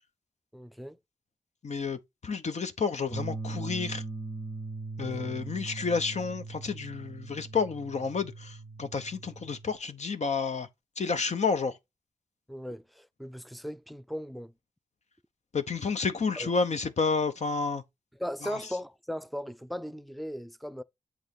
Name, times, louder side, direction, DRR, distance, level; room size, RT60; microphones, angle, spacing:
voice 1, 0.5-1.0 5.0-5.3 12.5-14.5 16.4-16.5 18.2-20.8, equal, ahead, 0.4 m, -38 dB
voice 2, 1.6-4.0 5.0-10.7 11.0-11.8 15.5-17.8 18.4-18.6, left 5 dB, 55° left, 0.8 m, -30 dB
sound 1, 3.1-9.7, right 3 dB, 15° left, 1.9 m, -40 dB
7.9 x 3.1 x 5.2 m
cardioid pair, 70°, 13 cm